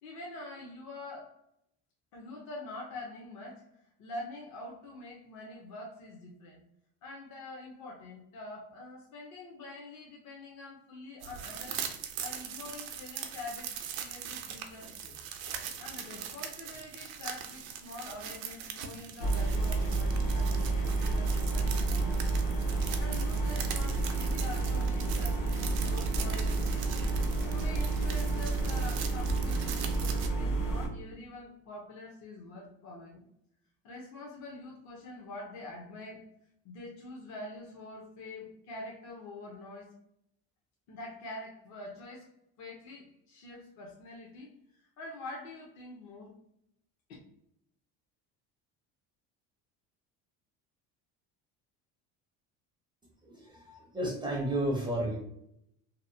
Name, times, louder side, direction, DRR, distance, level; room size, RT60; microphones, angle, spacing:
voice 1, 0.0-1.3 2.1-6.6 7.0-11.8 12.2-15.2 15.8-22.2 22.8-27.2 27.5-33.2 33.8-36.2 36.6-39.9 40.9-46.4, left 2 dB, 60° left, -2 dB, 0.7 m, -45 dB
sound 1, 11.2-30.3, right 8 dB, 85° right, 0.5 m, -41 dB
sound 2, 19.2-30.9, right 3 dB, 75° left, 0.9 m, -30 dB
voice 2, 53.2-55.2, right 1 dB, 15° right, -3 dB, 0.4 m, -32 dB
2.7 x 2.0 x 2.6 m, 0.76 s
cardioid pair, 145°, 33 cm